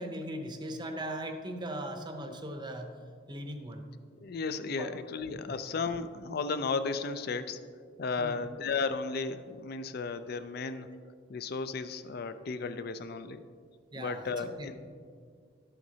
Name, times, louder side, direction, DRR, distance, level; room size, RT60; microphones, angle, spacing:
voice 1, 0.0-3.0 3.3-3.8 4.8-4.9 5.5-5.6 8.2-8.5 13.9-14.7, right 1 dB, 20° right, 5 dB, 0.7 m, -39 dB
voice 2, 4.2-7.6 8.0-10.9 11.3-13.4 14.0-14.7, left 4 dB, 50° left, 11 dB, 0.4 m, -34 dB
12.0 x 7.7 x 2.8 m, 2.1 s
head